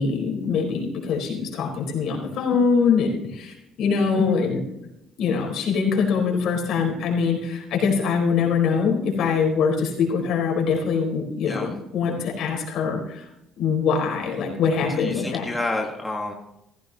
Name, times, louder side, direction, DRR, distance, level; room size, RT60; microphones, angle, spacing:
voice 1, 0.0-4.7 5.2-13.2 13.6-15.5, left 5 dB, 65° left, 0 dB, 4.3 m, -23 dB
voice 2, 14.9-16.3, left 2 dB, 5° left, -1 dB, 1.6 m, -29 dB
15.5 x 15.0 x 2.9 m, 0.87 s
cardioid pair, 135°, 0 cm